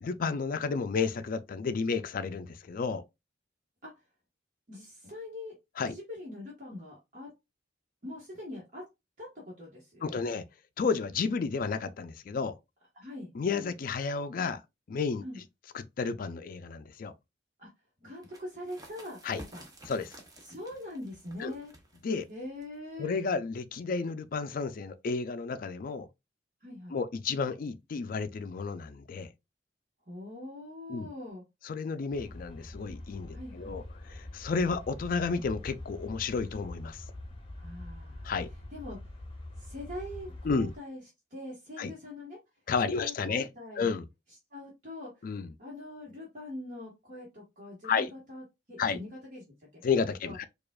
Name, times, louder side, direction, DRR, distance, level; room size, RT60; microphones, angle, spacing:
voice 1, 0.0-3.0 5.8-5.9 10.0-10.5 10.8-12.5 13.3-14.6 14.9-15.2 15.7-17.1 19.2-19.4 19.9-20.1 21.4-21.5 22.0-22.3 23.0-26.1 26.9-29.3 30.9-31.1 31.6-37.0 38.2-38.5 40.4-40.7 41.8-41.9 42.7-43.5 43.8-44.0 45.2-45.5 47.8-48.1 48.8-49.0 49.8-50.4, left 5 dB, 50° left, 0.4 m, -31 dB
voice 2, 4.7-5.5 5.9-7.3 8.0-8.8 9.2-10.2 12.9-13.3 15.2-15.4 17.6-17.7 18.0-19.6 20.4-21.7 22.3-23.2 26.6-27.0 30.1-31.4 33.3-33.8 37.6-38.3 38.7-39.0 39.6-41.0 41.3-42.4 42.8-43.9 44.5-45.2 45.6-49.8 50.2-50.4, left 1 dB, 45° right, 1.3 m, -43 dB
sound 1, 18.1-23.5, right 1 dB, 20° right, 0.7 m, -53 dB
sound 2, 32.1-40.8, left 1 dB, 30° left, 0.8 m, -44 dB
4.6 x 2.4 x 2.3 m
head